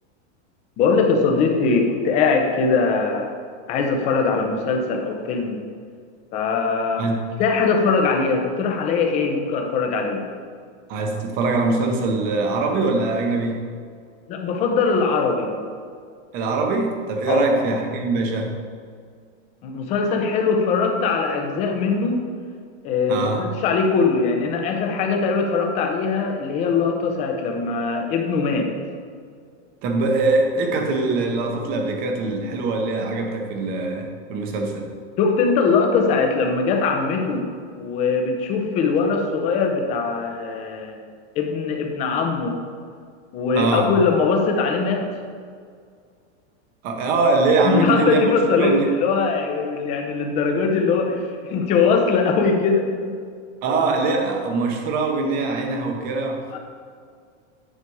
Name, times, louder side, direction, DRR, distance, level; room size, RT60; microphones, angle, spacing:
voice 1, 0.8-3.3 3.7-5.6 6.3-7.1 7.4-10.3 14.3-15.5 17.3-17.5 19.6-22.2 22.8-28.7 35.2-37.4 37.8-41.0 41.4-42.6 43.3-45.1 47.6-51.2 51.5-53.2 56.5-56.6, left 4 dB, 20° left, 3 dB, 0.6 m, -21 dB
voice 2, 10.9-13.6 16.3-18.6 23.1-23.5 29.8-34.9 43.5-43.9 46.8-48.3 48.6-48.9 53.6-56.4, right 3 dB, 25° right, 3 dB, 0.8 m, -22 dB
9.9 x 5.0 x 4.6 m, 2.1 s
supercardioid pair, 175°, 35 cm